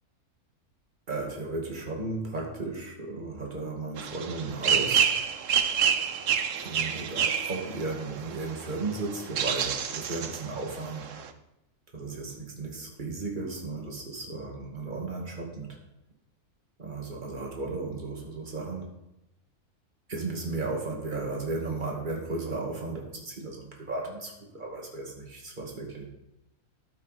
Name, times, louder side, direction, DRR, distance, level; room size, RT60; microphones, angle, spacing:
voice 1, 1.1-5.1 6.6-11.1 11.9-15.8 16.8-18.9 20.1-26.1, right 3 dB, 35° right, -1 dB, 2.3 m, -35 dB
sound 1, 4.0-11.3, right 7 dB, 65° right, 1.1 m, -29 dB
13.0 x 8.3 x 4.2 m, 0.90 s
omnidirectional pair, 1.5 m